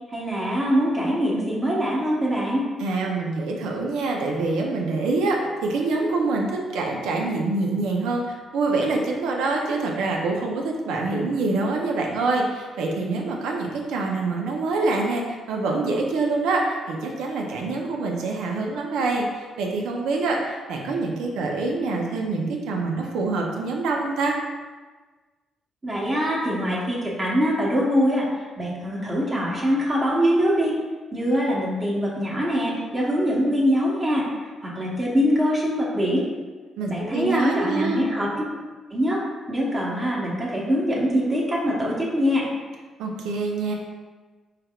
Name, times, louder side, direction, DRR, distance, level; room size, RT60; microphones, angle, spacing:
voice 1, 0.1-2.6 25.8-28.2 28.6-30.7 31.1-34.2 34.6-36.2 36.9-38.3 38.9-39.2 39.5-42.5, equal, 30° right, -5 dB, 0.9 m, -23 dB
voice 2, 2.8-24.3 36.8-38.0 43.0-43.7, right 3 dB, 90° right, 1 dB, 0.6 m, -25 dB
4.4 x 3.3 x 2.3 m, 1.4 s
cardioid pair, 90°, 0 cm